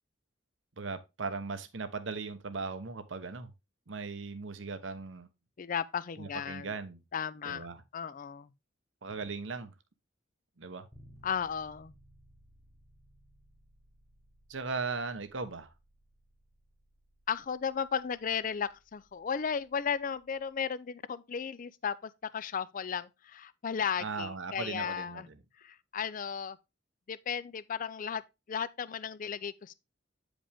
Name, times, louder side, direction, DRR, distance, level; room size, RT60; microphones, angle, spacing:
voice 1, 0.8-3.5 3.9-5.3 6.2-7.0 7.4-7.8 9.0-9.7 10.6-10.9 14.5-15.7 24.0-25.4, right 4 dB, 70° right, 0.9 m, -38 dB
voice 2, 5.6-6.7 7.1-7.7 7.9-8.5 11.2-11.9 17.3-25.3 25.6-26.6 27.1-28.2 28.5-29.7, left 7 dB, 45° left, 0.4 m, -35 dB
Bass guitar, 10.9-20.8, right 1 dB, 15° left, 1.2 m, -62 dB
8.7 x 5.1 x 3.4 m
head